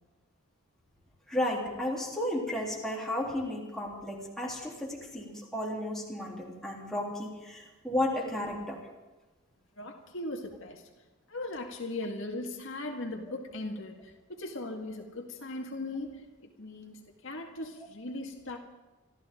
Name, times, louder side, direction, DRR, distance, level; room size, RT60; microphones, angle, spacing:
voice 1, 1.3-8.8, left 1 dB, ahead, -4 dB, 3.6 m, -33 dB
voice 2, 9.8-10.9 11.3-16.2 16.6-18.6, left 2 dB, 65° left, 2 dB, 2.0 m, -38 dB
26.0 x 14.0 x 3.9 m, 1.1 s
head